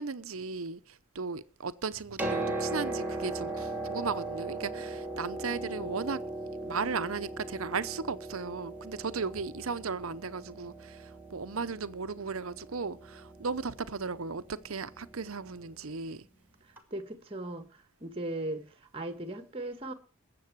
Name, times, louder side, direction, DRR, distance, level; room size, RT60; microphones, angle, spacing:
voice 1, 0.0-6.2 6.5-16.3, right 5 dB, 70° right, 0.8 m, -36 dB
Piano, 1.9-15.7 16.8-16.9, right 2 dB, 10° right, 2.6 m, -39 dB
voice 2, 16.9-18.6 18.9-19.9, right 1 dB, 25° right, 1.5 m, -37 dB
20.5 x 7.8 x 4.7 m
head